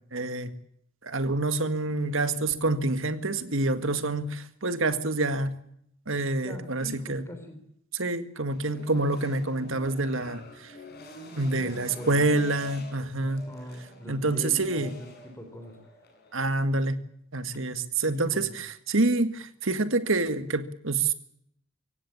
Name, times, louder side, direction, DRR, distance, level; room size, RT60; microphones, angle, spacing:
voice 1, 0.1-0.5 1.0-5.5 6.1-7.2 7.9-10.7 11.4-13.4 14.1-14.9 16.3-17.0 17.3-21.1, right 2 dB, 65° right, 11 dB, 1.8 m, -27 dB
voice 2, 6.3-7.6 11.4-12.3 13.2-15.8 18.0-18.5, equal, 15° left, 6 dB, 3.5 m, -42 dB
sound 1, 8.5-16.6, left 1 dB, 50° left, 7.0 m, -47 dB
24.0 x 17.0 x 8.7 m, 0.73 s
head